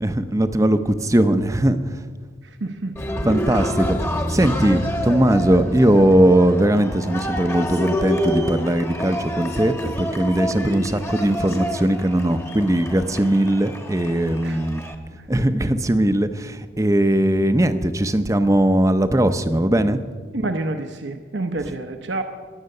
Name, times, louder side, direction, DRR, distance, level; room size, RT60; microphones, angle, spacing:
voice 1, 0.0-2.0 3.2-4.0 4.3-14.8 15.3-20.0 21.6-21.7, right 1 dB, 15° right, 10 dB, 0.6 m, -19 dB
voice 2, 2.6-2.9 14.4-14.6 20.3-22.2, right 2 dB, 70° right, 6 dB, 0.9 m, -28 dB
Cheering, 3.0-15.0, equal, 15° left, 1.1 m, -28 dB
21.5 x 8.1 x 6.6 m, 1.5 s
head